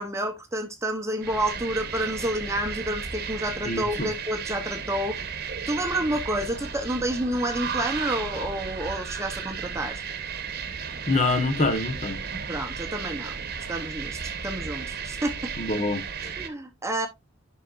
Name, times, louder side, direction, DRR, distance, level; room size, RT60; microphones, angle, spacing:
voice 1, 0.0-5.2 5.7-10.0 12.5-13.4 13.7-15.5 16.2-17.1, right 1 dB, 15° right, 0.9 m, -29 dB
sound 1, 1.2-16.5, right 6 dB, 50° right, 1.1 m, -34 dB
voice 2, 3.6-4.1 11.1-12.2 15.6-16.0, left 2 dB, 35° left, 1.3 m, -25 dB
10.5 x 5.7 x 2.5 m
head